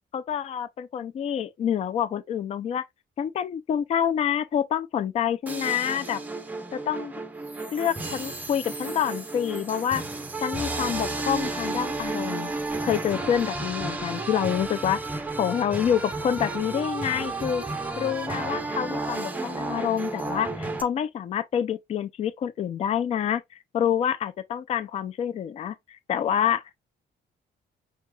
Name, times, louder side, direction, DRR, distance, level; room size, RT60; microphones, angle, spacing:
voice 1, 0.1-2.8 3.2-6.2 6.7-7.1 7.7-10.0 10.4-12.5 12.8-17.6 18.0-23.4 23.7-26.8, left 9 dB, 35° left, 0.4 m, -27 dB
sound 1, 5.5-20.8, right 2 dB, 10° right, 0.6 m, -32 dB
5.4 x 3.1 x 2.2 m
cardioid pair, 175°, 18 cm